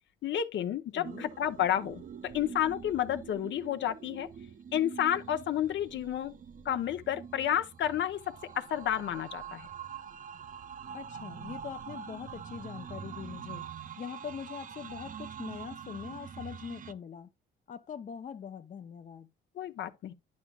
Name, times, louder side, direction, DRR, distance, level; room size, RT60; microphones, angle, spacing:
voice 1, 0.2-2.0 2.3-4.3 4.7-6.3 6.6-9.7 19.6-20.1, left 10 dB, 70° left, 0.8 m, -31 dB
voice 2, 0.9-1.3 10.9-13.7 14.0-17.3 17.7-19.3, left 7 dB, 40° left, 0.6 m, -42 dB
sound 1, 1.0-16.9, right 7 dB, 45° right, 0.6 m, -45 dB
10.5 x 5.9 x 2.4 m
cardioid pair, 90°, 20 cm